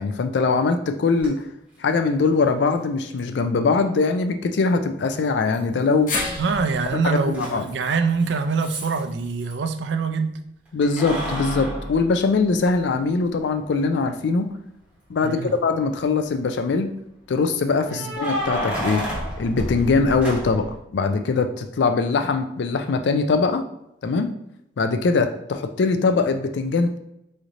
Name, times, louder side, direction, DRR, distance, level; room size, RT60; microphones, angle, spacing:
voice 1, 0.0-1.4 1.8-6.1 7.0-7.6 10.7-14.5 15.1-16.9 17.3-19.0 19.4-23.7 24.0-24.3 24.8-27.0, left 4 dB, 70° left, 8 dB, 0.4 m, -22 dB
Keys jangling, 1.2-1.3 3.2-3.3 5.5-6.1 6.4-9.5 10.8-12.9 13.4-13.5 15.3-15.8 17.8-20.8, equal, 5° right, 0.8 m, -31 dB
sound 1, 6.1-10.3 10.7-10.8 11.9-12.0, left 3 dB, 45° left, 0.7 m, -34 dB
voice 2, 6.4-10.4 15.2-15.5 17.9-18.1, right 5 dB, 75° right, 6 dB, 0.4 m, -24 dB
4.0 x 3.2 x 2.5 m, 0.80 s
head